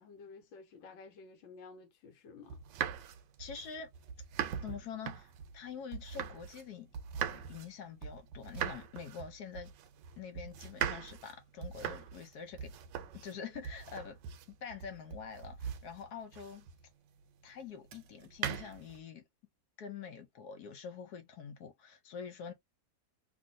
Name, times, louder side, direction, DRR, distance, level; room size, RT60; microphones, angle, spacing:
voice 1, 0.0-2.6, left 4 dB, 85° left, 1.5 m, -53 dB
sound 1, 2.5-6.7 6.9-16.9 17.9-19.0, right 9 dB, 75° right, 1.2 m, -41 dB
voice 2, 3.4-3.9 4.6-6.9 7.3-9.7 10.2-12.7 13.1-14.2 14.5-16.6 17.4-19.2 19.8-22.5, left 7 dB, 65° left, 1.0 m, -46 dB
3.0 x 2.6 x 2.6 m
omnidirectional pair, 2.1 m